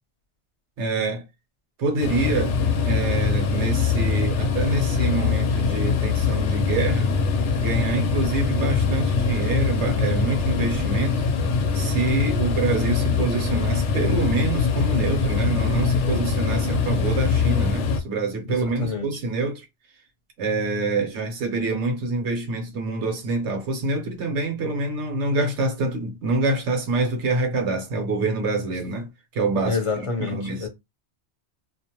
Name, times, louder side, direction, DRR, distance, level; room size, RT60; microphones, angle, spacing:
voice 1, 0.8-1.2 1.8-2.5 2.9-7.1 7.6-11.2 11.7-19.6 20.4-29.1 29.3-29.8 30.2-30.7, right 2 dB, 80° right, 1.2 m, -26 dB
sound 1, 2.0-18.0, left 5 dB, 90° left, 0.9 m, -23 dB
voice 2, 18.5-19.2 29.7-30.7, left 4 dB, 30° left, 0.8 m, -28 dB
2.5 x 2.1 x 2.9 m
omnidirectional pair, 1.2 m